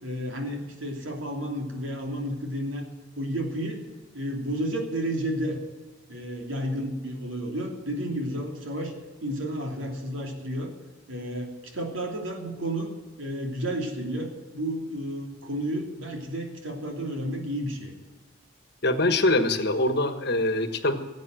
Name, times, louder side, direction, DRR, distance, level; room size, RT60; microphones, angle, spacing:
voice 1, 0.0-2.9 3.2-3.8 4.1-5.6 6.1-8.9 9.2-10.7 11.1-12.9 13.2-17.9, equal, 80° right, 2 dB, 3.0 m, -31 dB
voice 2, 18.8-20.9, left 2 dB, 55° left, 9 dB, 1.3 m, -23 dB
17.0 x 8.3 x 7.7 m, 1.3 s
head